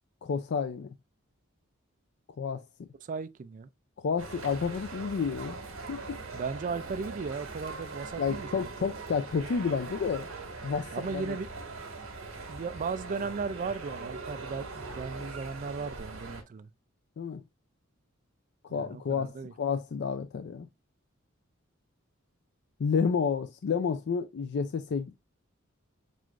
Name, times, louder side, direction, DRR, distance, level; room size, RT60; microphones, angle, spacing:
voice 1, 0.2-0.9 2.4-2.6 4.0-5.6 5.9-6.2 8.2-10.3 10.6-11.3 17.2-17.4 18.6-20.7 22.8-25.1, left 6 dB, 55° left, 0.4 m, -30 dB
voice 2, 3.0-3.7 6.3-8.9 10.9-11.5 12.5-16.7 18.7-19.5, right 5 dB, 40° right, 0.3 m, -36 dB
sound 1, 4.2-16.4, right 3 dB, 70° right, 1.5 m, -41 dB
6.2 x 2.4 x 2.4 m
head